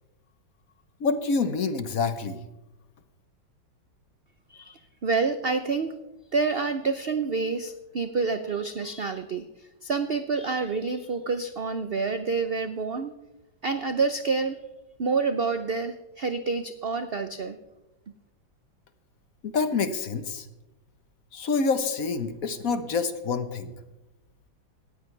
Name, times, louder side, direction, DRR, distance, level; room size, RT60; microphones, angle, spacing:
voice 1, 1.0-2.4 19.4-20.4 21.3-23.7, left 4 dB, 55° left, 10 dB, 1.3 m, -27 dB
voice 2, 4.5-6.0 6.3-9.5 9.8-13.2 13.6-14.6 15.0-17.6, right 4 dB, 65° right, 9 dB, 0.5 m, -28 dB
18.0 x 14.5 x 3.3 m, 1.0 s
omnidirectional pair, 2.0 m